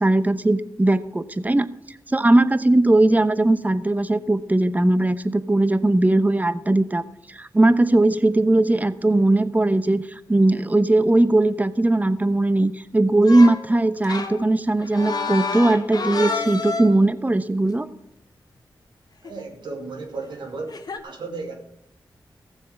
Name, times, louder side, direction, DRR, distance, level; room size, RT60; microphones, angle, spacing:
voice 1, 0.0-1.7 2.1-7.0 7.3-10.0 10.3-17.9, right 2 dB, 20° right, 13 dB, 0.9 m, -19 dB
sound 1, 13.3-13.7 14.0-17.1 19.2-19.4 20.7-21.0, left 4 dB, 60° left, 1.4 m, -29 dB
voice 2, 19.2-20.8 21.0-21.5, right 3 dB, 80° right, 3 dB, 2.4 m, -34 dB
15.0 x 7.2 x 5.9 m, 0.78 s
cardioid pair, 45°, 8 cm